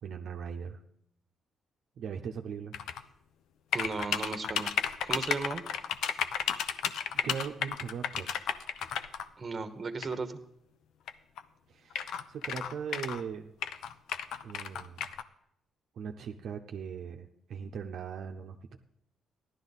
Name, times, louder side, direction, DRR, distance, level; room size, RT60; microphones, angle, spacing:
voice 1, 0.0-0.8 2.0-2.8 7.2-8.3 11.7-13.5 14.4-15.1 15.9-18.8, right 7 dB, 65° right, 3 dB, 0.7 m, -39 dB
sound 1, 2.7-3.0 3.7-9.2 10.0-10.2 11.1-11.2 11.4-11.5 11.9-13.2 13.6-15.2, left 8 dB, 80° left, 0.6 m, -33 dB
voice 2, 3.7-4.7 5.0-5.6 9.4-10.4, right 4 dB, 35° right, 9 dB, 1.1 m, -35 dB
14.5 x 11.5 x 4.1 m, 0.74 s
cardioid pair, 90°, 0 cm